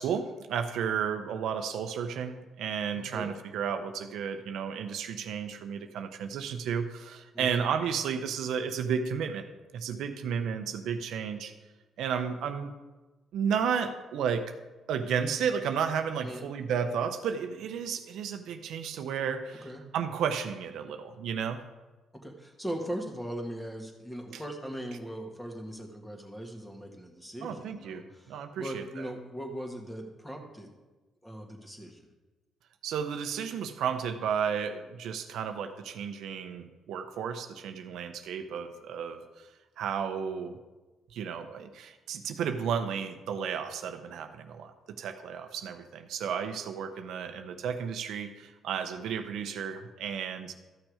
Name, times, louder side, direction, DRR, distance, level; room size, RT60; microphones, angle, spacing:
voice 1, 0.0-9.5 9.7-11.5 12.0-12.7 13.3-14.5 14.9-19.7 19.9-21.6 24.3-24.4 27.4-29.1 32.8-39.2 39.8-40.6 41.1-50.5, right 7 dB, 80° right, 7 dB, 0.7 m, -33 dB
voice 2, 2.9-3.3 7.3-7.6 16.2-16.5 19.6-19.8 22.2-30.7 31.2-32.0, right 1 dB, 10° left, 2 dB, 1.9 m, -39 dB
13.5 x 6.3 x 4.9 m, 1.2 s
cardioid pair, 90°, 0 cm